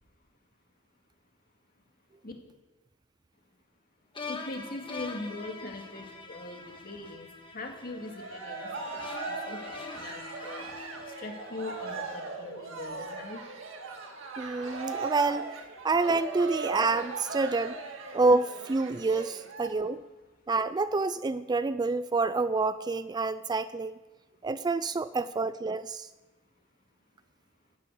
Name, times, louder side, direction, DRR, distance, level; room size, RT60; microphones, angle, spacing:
sound 1, 4.1-12.3, left 4 dB, 25° left, 1.6 m, -44 dB
voice 1, 4.3-10.7 11.1-13.4 19.9-20.0, left 2 dB, 45° left, 3 dB, 2.2 m, -41 dB
Cheering, 7.9-19.7, right 3 dB, 75° right, 2.0 m, -39 dB
voice 2, 14.4-15.5 15.8-17.8 18.1-20.0 20.5-24.0 24.4-26.1, right 3 dB, 20° right, 14 dB, 0.3 m, -28 dB
11.5 x 9.7 x 8.5 m, 1.2 s
head